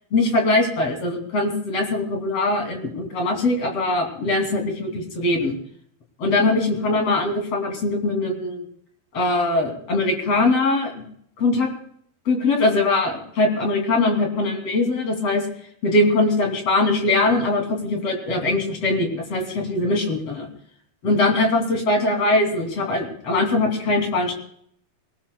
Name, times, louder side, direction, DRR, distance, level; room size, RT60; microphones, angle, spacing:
voice 1, 0.1-5.6 6.2-8.7 9.1-11.0 11.4-11.7 12.3-15.4 15.8-20.5 21.0-24.4, left 2 dB, 40° left, 2 dB, 3.7 m, -21 dB
23.0 x 19.5 x 2.3 m, 0.67 s
omnidirectional pair, 4.4 m